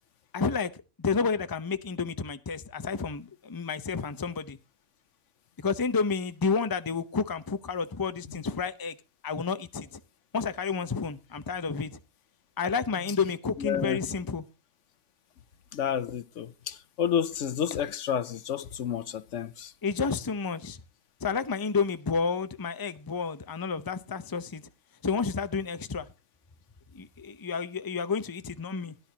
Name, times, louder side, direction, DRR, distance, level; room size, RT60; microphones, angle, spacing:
voice 1, 0.3-0.7 1.0-4.6 5.6-8.9 9.2-10.0 10.3-11.9 12.6-14.4 19.8-20.8 21.2-24.6 25.0-26.1 26.9-28.9, left 5 dB, 20° left, 0.7 m, -30 dB
voice 2, 13.6-14.0 15.7-19.7, left 8 dB, 75° left, 1.1 m, -30 dB
17.0 x 11.0 x 2.9 m
omnidirectional pair, 1.3 m